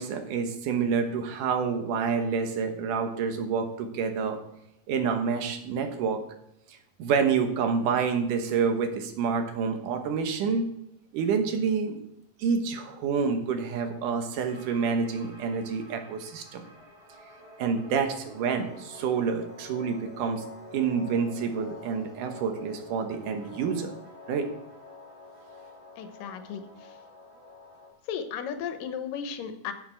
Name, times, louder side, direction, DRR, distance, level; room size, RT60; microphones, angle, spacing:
voice 1, 0.0-4.4 4.9-6.2 6.7-10.7 11.1-12.0 12.4-16.6 17.6-20.4 20.7-23.9 24.3-24.5, right 6 dB, 75° right, 6 dB, 2.6 m, -28 dB
sound 1, 14.5-27.9, left 2 dB, 45° right, 4.9 m, -48 dB
voice 2, 26.0-26.6 28.1-29.7, left 7 dB, 85° left, 9 dB, 2.6 m, -34 dB
11.0 x 7.6 x 4.4 m, 0.82 s
omnidirectional pair, 3.8 m